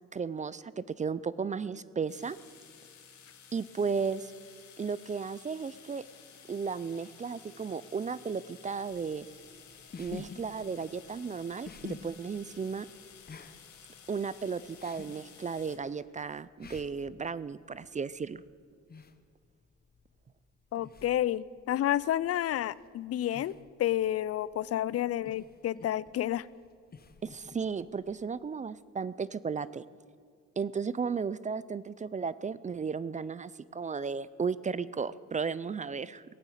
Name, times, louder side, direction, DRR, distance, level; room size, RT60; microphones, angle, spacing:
voice 1, 0.1-2.4 3.5-4.3 4.8-6.0 6.5-9.3 10.0-12.9 14.1-18.4 27.2-29.8 30.6-36.2, right 5 dB, 25° right, 18 dB, 0.4 m, -34 dB
sound 1, 2.1-15.8, left 7 dB, 70° left, 2.2 m, -54 dB
sound 2, 9.1-28.6, left 4 dB, 30° left, 1.0 m, -51 dB
voice 2, 20.7-23.5 23.8-26.5, left 12 dB, 55° left, 21 dB, 0.4 m, -30 dB
17.5 x 8.9 x 8.4 m, 2.1 s
cardioid pair, 90°, 30 cm